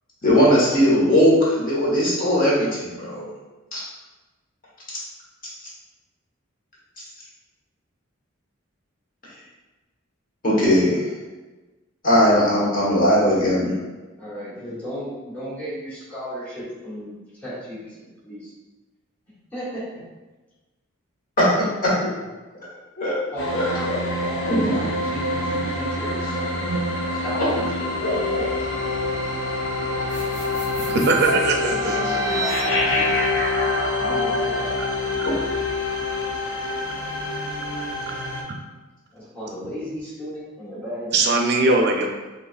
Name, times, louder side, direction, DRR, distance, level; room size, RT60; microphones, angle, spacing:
voice 1, 0.2-3.3 3.7-3.8 10.4-11.0 12.0-13.7 21.4-22.1 23.0-23.2 23.5-24.0 24.4-24.9 27.4-27.5 28.0-28.2 32.1-32.2, equal, 40° left, -7 dB, 1.3 m, -19 dB
voice 2, 14.2-18.5 19.5-20.1 23.3-26.4 27.1-27.8 28.2-28.5 30.9-31.0 31.8-33.2 33.9-34.7 39.1-41.3, equal, 10° left, -12 dB, 1.4 m, -35 dB
sound 1, 23.4-38.4, left 2 dB, 60° left, 0.8 m, -26 dB
sound 2, 30.1-36.4, left 2 dB, 75° left, 1.4 m, -28 dB
voice 3, 30.8-32.0 35.2-35.3 38.5-38.6 41.1-42.1, right 3 dB, 55° right, 2 dB, 0.5 m, -21 dB
4.1 x 3.1 x 2.5 m, 1.2 s
head